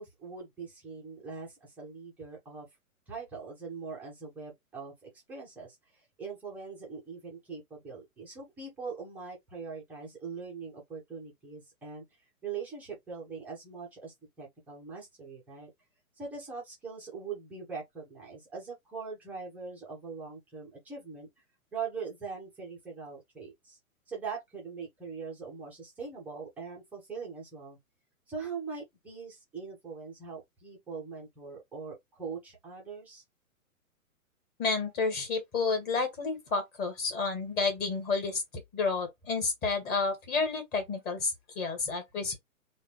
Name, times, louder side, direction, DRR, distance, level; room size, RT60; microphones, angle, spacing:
voice 1, 0.0-2.7 3.1-12.0 12.4-15.7 16.2-21.3 21.7-23.8 24.1-27.8 28.3-33.2, right 5 dB, 5° right, 0.5 m, -42 dB
voice 2, 34.6-38.4 38.7-42.4, left 4 dB, 20° left, 1.4 m, -30 dB
3.7 x 2.2 x 3.2 m
figure-of-eight pair, 115°, 43 cm